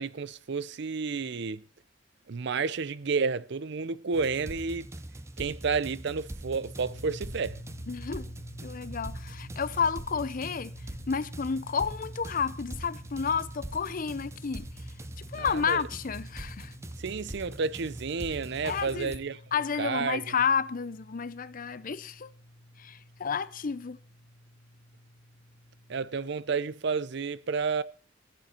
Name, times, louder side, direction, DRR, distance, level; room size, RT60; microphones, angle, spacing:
voice 1, 0.0-1.6 2.3-4.9 5.4-7.6 15.3-15.9 17.0-19.4 19.8-20.3 25.9-27.8, right 5 dB, 65° right, 0.6 m, -31 dB
sound 1, 4.1-19.2, right 1 dB, 15° right, 0.7 m, -42 dB
sound 2, 6.8-26.1, equal, 75° left, 3.7 m, -49 dB
voice 2, 7.9-8.3 8.6-10.7 11.1-14.7 15.3-16.7 18.6-19.1 19.5-22.3 22.8-24.0, left 6 dB, 45° left, 0.6 m, -31 dB
15.0 x 10.5 x 4.4 m
head